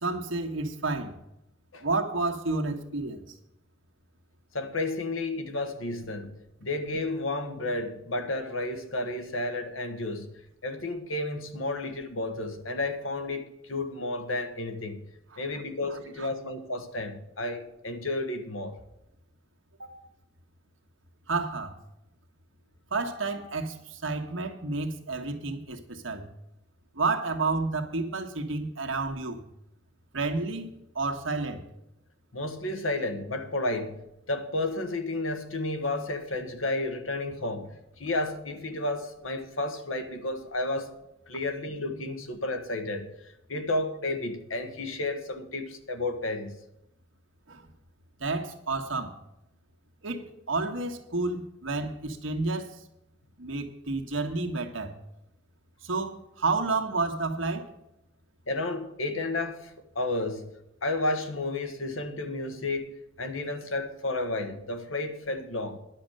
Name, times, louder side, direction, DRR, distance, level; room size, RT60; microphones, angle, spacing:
voice 1, 0.0-1.2 1.8-3.3 15.3-15.4 15.9-16.3 19.8-19.9 21.3-21.8 22.9-26.3 26.9-29.4 30.1-31.6 47.5-47.7 48.2-49.2 50.0-52.8 53.4-55.0 55.8-57.7, right 3 dB, 70° right, 1.5 m, -30 dB
voice 2, 4.5-15.0 15.4-18.8 32.3-41.0 41.3-43.1 43.5-46.6 58.5-60.5 60.8-62.9 63.2-65.8, left 2 dB, 80° left, 1.6 m, -32 dB
10.5 x 6.6 x 8.9 m
head